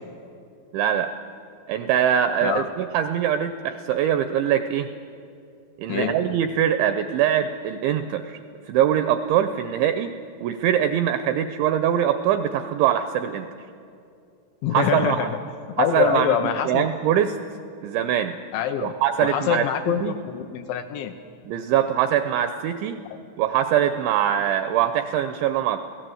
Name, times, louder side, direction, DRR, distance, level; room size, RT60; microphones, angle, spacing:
voice 1, 0.7-1.1 1.7-4.9 5.8-8.4 8.7-10.1 10.4-13.5 14.7-15.3 15.8-16.3 16.7-17.4 17.8-18.4 18.8-19.7 20.0-20.1 21.5-23.0 23.4-25.8, right 10 dB, 85° right, 9 dB, 2.6 m, -23 dB
voice 2, 14.6-15.4 15.8-16.9 18.5-18.9 19.2-21.1, left 9 dB, 80° left, 6 dB, 2.7 m, -24 dB
24.5 x 17.0 x 7.8 m, 2.5 s
omnidirectional pair, 6.0 m